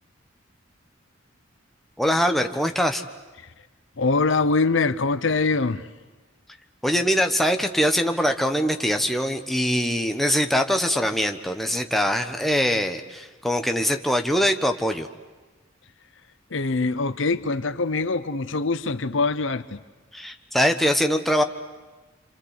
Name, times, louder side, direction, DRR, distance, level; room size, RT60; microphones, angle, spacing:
voice 1, 2.0-3.0 6.8-15.1 20.1-21.4, equal, ahead, 5 dB, 1.2 m, -23 dB
voice 2, 4.0-5.9 16.5-19.8, left 3 dB, 70° left, 13 dB, 0.9 m, -23 dB
27.0 x 26.5 x 8.3 m, 1.2 s
head